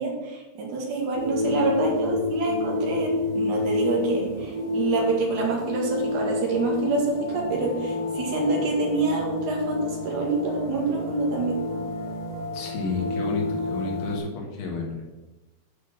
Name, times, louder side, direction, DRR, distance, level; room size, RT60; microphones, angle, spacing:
voice 1, 0.0-11.6, right 3 dB, 60° right, -1 dB, 2.4 m, -26 dB
sound 1, 1.1-14.2, left 2 dB, 30° left, 0.7 m, -29 dB
voice 2, 12.5-15.1, left 3 dB, 65° left, -1 dB, 3.1 m, -31 dB
8.3 x 3.9 x 6.7 m, 1.1 s
omnidirectional pair, 4.9 m